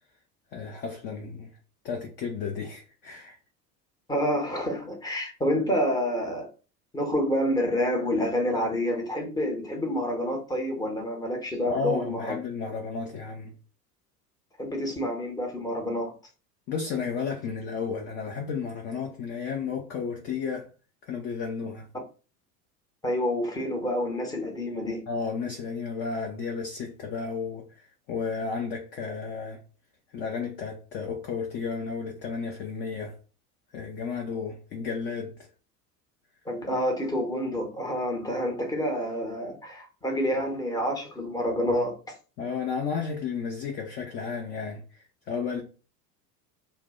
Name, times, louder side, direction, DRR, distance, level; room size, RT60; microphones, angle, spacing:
voice 1, 0.5-1.5 1.8-3.4 11.7-13.5 16.7-20.7 21.0-21.9 25.1-29.6 30.1-33.2 33.7-35.3 42.4-44.8 45.3-45.6, left 5 dB, 25° left, 0.3 m, -33 dB
voice 2, 4.1-6.5 6.9-12.4 14.6-16.1 23.0-25.0 36.4-42.1, equal, 10° left, 0.8 m, -28 dB
2.4 x 2.1 x 3.6 m
figure-of-eight pair, 75°, 49 cm